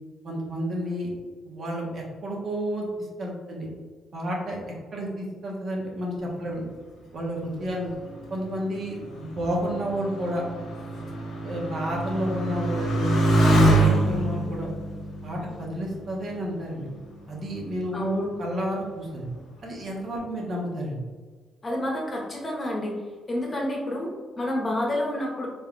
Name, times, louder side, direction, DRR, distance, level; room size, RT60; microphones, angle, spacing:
voice 1, 0.2-1.1 1.4-3.7 4.1-4.6 4.9-6.6 7.1-7.9 8.3-10.4 11.4-13.1 13.5-14.7 15.2-16.9 17.3-18.0 18.4-19.3 19.6-21.0, equal, 50° right, -2 dB, 1.2 m, -31 dB
Motorcycle, 7.6-16.6 17.3-17.9, right 1 dB, 75° left, 1.3 m, -25 dB
voice 2, 17.9-18.3 21.6-22.9 23.3-25.5, left 1 dB, 30° left, -2 dB, 1.2 m, -28 dB
3.9 x 3.7 x 2.4 m, 1.4 s
cardioid pair, 90°, 0 cm